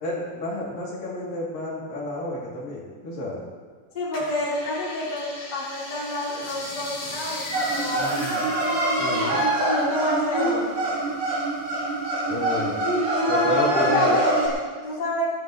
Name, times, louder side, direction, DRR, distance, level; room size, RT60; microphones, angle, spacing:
voice 1, 0.0-3.4 7.9-8.5 9.0-9.4 12.3-12.8 13.3-14.2, left 1 dB, 70° left, -5 dB, 4.3 m, -31 dB
voice 2, 3.9-8.3 9.6-10.8 13.1-15.3, left 1 dB, 30° left, -7 dB, 4.0 m, -28 dB
sound 1, 4.1-10.0 10.2-11.5 12.0-12.8 13.3-13.4, left 1 dB, 45° left, 6.1 m, -37 dB
sound 2, 7.5-14.5, right 2 dB, 80° right, 4.9 m, -24 dB
20.5 x 13.5 x 3.1 m, 1.5 s
omnidirectional pair, 4.2 m